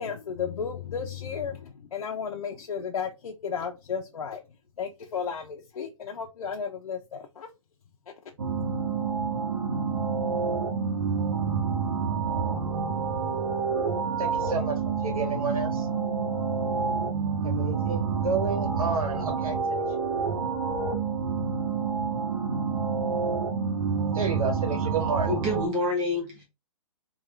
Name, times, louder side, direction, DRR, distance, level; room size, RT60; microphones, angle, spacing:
voice 1, 0.0-4.4 4.8-7.5, left 6 dB, 90° left, 0.7 m, -33 dB
sound 1, 8.4-25.7, right 5 dB, 55° right, 0.9 m, -28 dB
voice 2, 14.2-15.9 17.4-19.8 24.1-25.3, right 4 dB, 85° right, 1.8 m, -31 dB
voice 3, 25.1-26.4, left 1 dB, 10° right, 0.7 m, -29 dB
3.6 x 2.4 x 3.2 m
hypercardioid pair, 175°, 18 cm